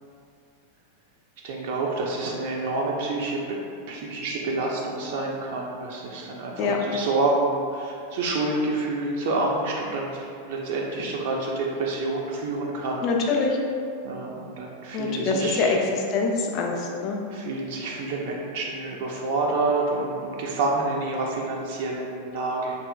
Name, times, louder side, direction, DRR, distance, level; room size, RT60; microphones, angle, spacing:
voice 1, 1.4-3.4 3.9-13.0 14.0-15.8 17.3-22.7, right 2 dB, 50° right, -2 dB, 0.3 m, -28 dB
voice 2, 13.0-13.6 14.9-17.2, left 4 dB, 40° left, 1 dB, 0.3 m, -24 dB
2.7 x 2.4 x 2.2 m, 2.4 s
figure-of-eight pair, 90°, 0 cm